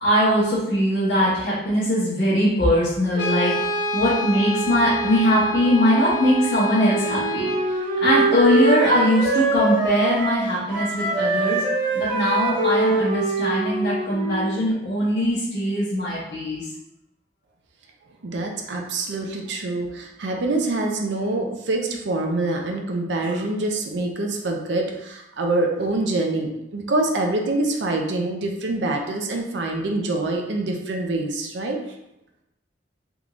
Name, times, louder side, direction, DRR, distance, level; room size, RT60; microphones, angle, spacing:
voice 1, 0.0-3.5 3.9-7.5 8.0-11.6 11.9-16.6, equal, 65° left, -10 dB, 1.1 m, -21 dB
Brass instrument, 3.1-7.7, right 1 dB, 85° left, 0.5 m, -27 dB
Wind instrument woodwind instrument, 6.9-10.5 10.7-14.6, right 3 dB, 25° right, 1.1 m, -23 dB
voice 2, 18.2-31.8, right 2 dB, 75° right, 2 dB, 0.5 m, -25 dB
3.5 x 3.0 x 2.5 m, 0.86 s
head